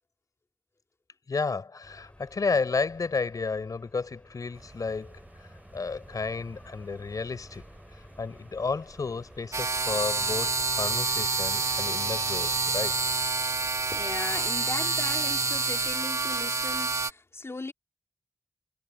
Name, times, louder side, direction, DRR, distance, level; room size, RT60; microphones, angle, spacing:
voice 1, 1.3-7.6 8.2-13.0, left 4 dB, 60° left, 4.3 m, -32 dB
sound 1, 1.8-15.9, left 1 dB, 15° left, 7.4 m, -54 dB
sound 2, 4.5-13.2, right 2 dB, 25° right, 6.5 m, -52 dB
sound 3, 9.5-17.1, right 4 dB, 45° right, 1.8 m, -28 dB
voice 2, 13.9-17.7, left 3 dB, 40° left, 3.3 m, -38 dB
cardioid pair, 45°, 7 cm